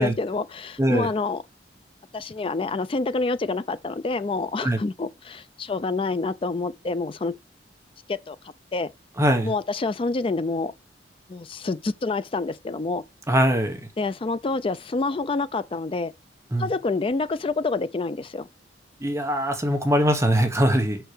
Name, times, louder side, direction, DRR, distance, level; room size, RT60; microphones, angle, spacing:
voice 1, 0.0-1.4 2.1-7.4 8.1-8.4 8.7-8.9 9.4-10.7 11.3-13.0 14.0-16.1 16.6-18.5, left 3 dB, 30° left, 0.4 m, -27 dB
voice 2, 0.8-1.1 4.6-4.8 9.2-9.5 13.3-13.8 16.5-16.7 19.0-21.0, equal, 15° right, 1.1 m, -21 dB
5.6 x 4.6 x 4.9 m
head